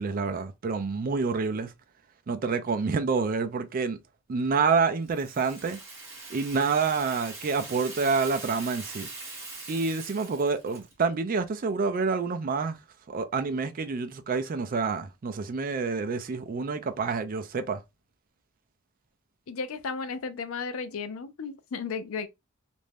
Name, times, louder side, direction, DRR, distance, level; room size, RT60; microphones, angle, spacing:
voice 1, 0.0-1.7 2.3-4.0 4.3-5.8 6.3-9.1 9.7-12.8 13.1-17.8, right 4 dB, 40° right, 0.4 m, -28 dB
Rattle (instrument), 5.1-11.1, right 3 dB, 10° right, 1.0 m, -42 dB
voice 2, 19.5-22.3, left 5 dB, 80° left, 0.5 m, -34 dB
2.5 x 2.1 x 3.2 m
head